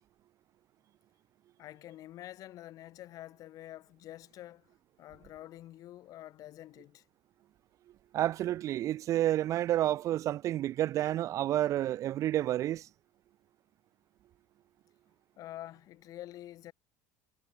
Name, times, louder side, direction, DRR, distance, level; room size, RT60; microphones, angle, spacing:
voice 1, 1.6-7.0 15.4-16.7, left 14 dB, 55° left, 1.9 m, -47 dB
voice 2, 8.1-12.8, right 13 dB, 45° right, 0.4 m, -30 dB
supercardioid pair, 115°, 7 cm